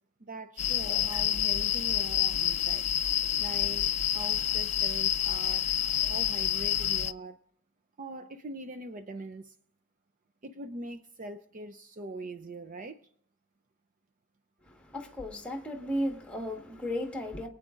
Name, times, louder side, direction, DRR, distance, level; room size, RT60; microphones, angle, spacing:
voice 1, 0.2-2.9 3.4-5.7 6.1-7.4 8.0-9.5 10.4-13.1, right 2 dB, 40° right, 0.5 m, -42 dB
sound 1, 0.6-7.1, left 11 dB, 35° left, 0.4 m, -28 dB
voice 2, 14.6-17.5, equal, 5° left, 1.5 m, -35 dB
23.5 x 9.0 x 2.5 m
head